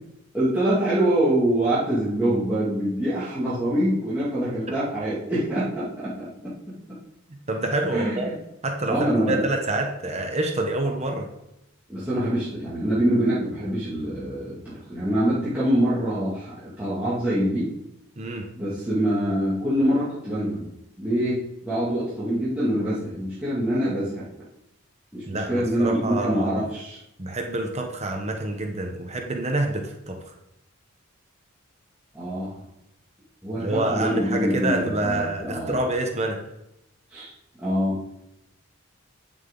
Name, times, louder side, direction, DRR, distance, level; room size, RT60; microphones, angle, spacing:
voice 1, 0.3-6.5 7.9-8.4 8.9-9.5 11.9-17.7 18.6-20.7 21.0-24.2 25.1-27.0 32.1-32.5 33.4-35.8 37.1-37.3 37.6-38.0, right 1 dB, 5° right, -12 dB, 2.2 m, -25 dB
voice 2, 7.3-8.3 8.6-11.3 18.2-18.5 25.3-26.5 27.2-30.2 33.6-36.4, right 2 dB, 30° right, 3 dB, 1.0 m, -27 dB
8.9 x 7.2 x 3.8 m, 0.85 s
head